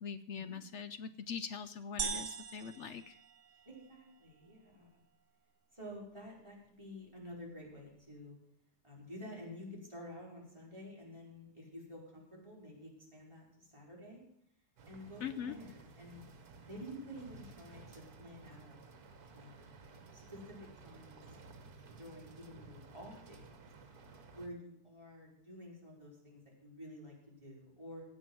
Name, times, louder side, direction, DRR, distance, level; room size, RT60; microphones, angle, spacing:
voice 1, 0.0-3.2 15.2-15.5, left 7 dB, 65° left, 12 dB, 0.7 m, -42 dB
sound 1, 2.0-3.9, right 6 dB, 85° right, 1.6 m, -41 dB
voice 2, 3.7-5.0 5.7-8.4 8.8-14.2 14.9-16.2 16.7-18.8 19.3-19.7 20.1-21.2 22.0-23.5 24.3-28.0, equal, 15° right, -4 dB, 4.4 m, -50 dB
sound 2, 14.8-24.5, right 4 dB, 65° right, 1.8 m, -55 dB
16.0 x 5.5 x 7.6 m, 0.74 s
omnidirectional pair, 1.7 m